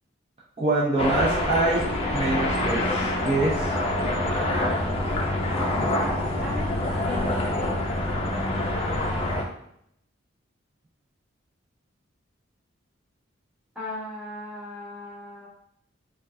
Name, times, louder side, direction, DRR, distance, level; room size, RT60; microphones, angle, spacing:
voice 1, 0.6-1.8 2.1-3.7, right 2 dB, 30° right, -7 dB, 0.5 m, -25 dB
sound 1, 1.0-9.4, left 1 dB, 30° left, 0.5 m, -26 dB
sound 2, 1.9-8.3, left 3 dB, 85° right, 0.9 m, -45 dB
voice 2, 5.7-6.1 6.4-7.7 13.7-15.5, left 1 dB, 5° right, -7 dB, 1.1 m, -37 dB
4.5 x 2.4 x 2.5 m, 0.72 s
head